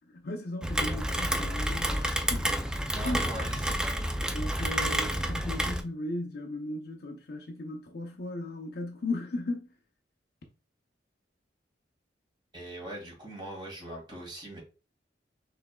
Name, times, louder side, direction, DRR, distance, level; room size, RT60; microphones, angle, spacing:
voice 1, 0.1-2.5 3.0-3.3 4.3-9.7, left 2 dB, 60° left, 0.6 m, -36 dB
Rain, 0.6-5.8, equal, 5° right, 0.3 m, -29 dB
voice 2, 2.9-4.0 4.6-4.9 12.5-14.6, right 1 dB, 25° right, 2.0 m, -41 dB
5.9 x 3.3 x 2.2 m
head